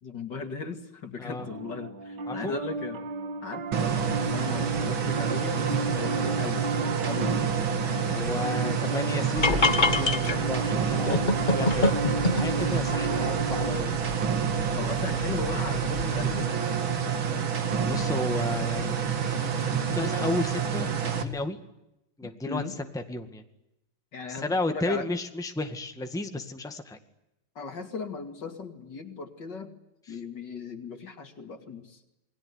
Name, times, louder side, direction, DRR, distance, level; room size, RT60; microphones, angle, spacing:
voice 1, 0.0-3.0 3.4-6.6 7.0-7.4 7.8-8.8 14.7-16.5 22.2-22.7 24.1-25.1 27.5-29.8 30.1-32.2, left 4 dB, 60° left, 7 dB, 3.1 m, -37 dB
Piano, 1.4-13.8, right 2 dB, 60° right, 2.6 m, -34 dB
voice 2, 2.3-2.6 8.1-14.0 17.8-19.1 19.9-21.6 22.2-23.4 24.3-27.0 30.1-30.2, left 2 dB, ahead, 6 dB, 1.8 m, -33 dB
sound 1, 3.7-21.2, right 7 dB, 85° right, 2.8 m, -28 dB
sound 2, 9.4-16.4, left 3 dB, 25° left, 1.4 m, -28 dB
28.0 x 21.5 x 9.8 m, 0.89 s
omnidirectional pair, 2.1 m